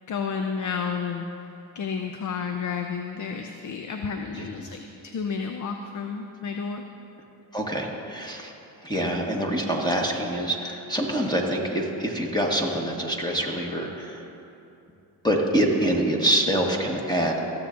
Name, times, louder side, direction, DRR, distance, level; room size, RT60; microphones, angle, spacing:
voice 1, 0.1-1.3 1.7-6.8, left 6 dB, 40° left, 5 dB, 0.6 m, -31 dB
voice 2, 4.3-4.7 7.5-8.5 8.8-14.2 15.2-17.4, right 1 dB, 10° left, -1 dB, 1.3 m, -25 dB
15.5 x 7.0 x 2.5 m, 2.8 s
hypercardioid pair, 55°, 47 cm